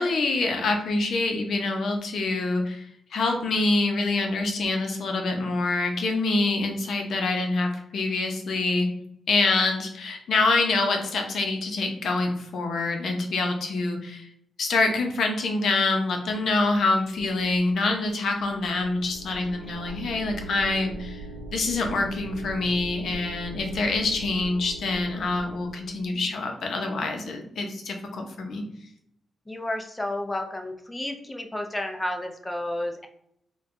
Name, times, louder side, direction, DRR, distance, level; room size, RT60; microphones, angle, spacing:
voice 1, 0.0-2.9 3.1-8.9 9.3-14.3 14.6-21.3 21.5-28.6, left 3 dB, 60° left, 3 dB, 0.6 m, -26 dB
sound 1, 18.4-26.1, right 2 dB, 65° right, 0.8 m, -40 dB
voice 2, 19.6-20.0 29.5-33.1, left 1 dB, 10° left, 3 dB, 0.5 m, -32 dB
4.3 x 2.2 x 2.5 m, 0.75 s
wide cardioid pair, 140°, 0 cm